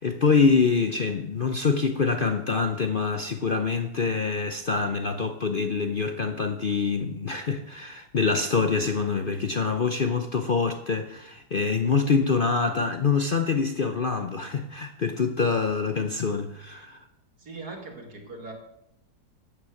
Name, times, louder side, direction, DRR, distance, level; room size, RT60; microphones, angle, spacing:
voice 1, 0.0-17.0, left 4 dB, 65° left, 0.5 m, -25 dB
voice 2, 17.4-18.5, right 3 dB, 55° right, 2.7 m, -40 dB
14.0 x 9.1 x 6.4 m
omnidirectional pair, 2.0 m